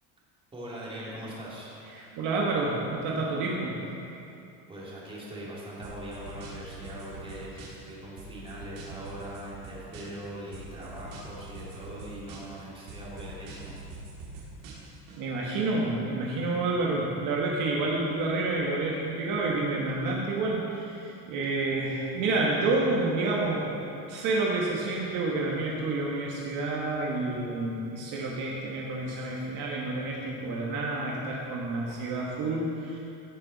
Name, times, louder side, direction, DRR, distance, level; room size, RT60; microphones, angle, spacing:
voice 1, 0.5-1.8 4.7-13.8, right 1 dB, 15° right, -7 dB, 2.7 m, -41 dB
voice 2, 1.9-3.7 15.1-23.7 23.9-33.0, right 2 dB, 55° right, -3 dB, 1.6 m, -29 dB
sound 1, 5.8-7.9 8.2-10.3 10.5-12.6 12.9-15.2, right 2 dB, 80° right, 2.8 m, -44 dB
16.0 x 7.6 x 4.1 m, 2.8 s
cardioid pair, 155°, 37 cm